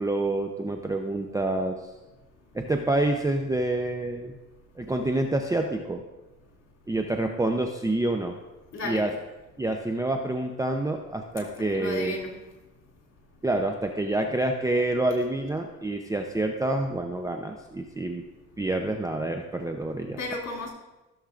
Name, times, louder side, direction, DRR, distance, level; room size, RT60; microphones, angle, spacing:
voice 1, 0.0-1.8 2.5-4.4 4.8-6.0 6.9-8.3 8.8-9.1 9.6-12.2 13.4-18.2 18.6-20.2, right 2 dB, 10° right, 4 dB, 0.6 m, -27 dB
voice 2, 8.7-9.1 11.4-12.3 20.2-20.7, left 2 dB, 60° left, -3 dB, 3.0 m, -33 dB
15.0 x 7.1 x 2.5 m, 1.1 s
cardioid pair, 90°, 30 cm